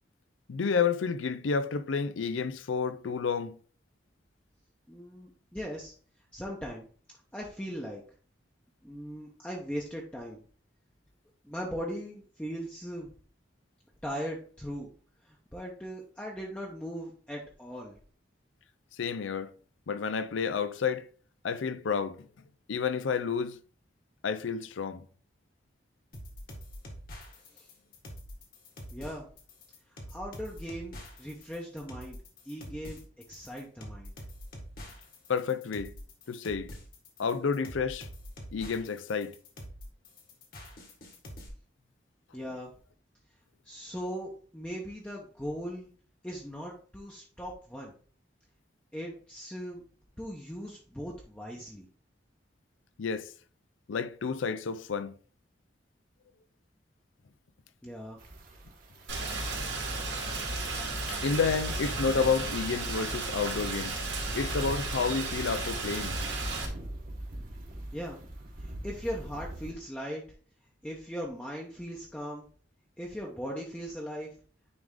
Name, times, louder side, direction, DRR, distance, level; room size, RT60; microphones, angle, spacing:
voice 1, 0.5-3.6 18.9-19.5 19.9-21.1 21.4-22.3 22.7-23.6 24.2-25.1 35.3-35.9 36.3-36.7 37.2-38.1 38.5-39.4 53.0-53.3 53.9-55.1 61.1-64.0 64.3-66.2, left 5 dB, 85° left, 0.5 m, -30 dB
voice 2, 4.9-5.9 6.3-6.9 7.3-8.0 8.8-10.4 11.4-13.1 14.0-14.9 15.2-18.0 27.5-27.7 28.9-29.3 30.1-32.2 32.4-33.0 33.3-34.1 42.3-42.7 43.6-45.9 46.2-47.9 48.9-49.8 50.2-51.9 57.8-58.2 67.9-68.2 68.6-70.2 70.8-72.4 73.0-74.3, equal, 5° left, 0.8 m, -39 dB
sound 1, 26.1-41.5, equal, 50° left, 1.7 m, -46 dB
sound 2, 58.2-69.7, right 1 dB, 45° right, 1.2 m, -45 dB
Rain, 59.1-66.7, right 3 dB, 80° right, 2.5 m, -34 dB
9.6 x 3.5 x 3.7 m
head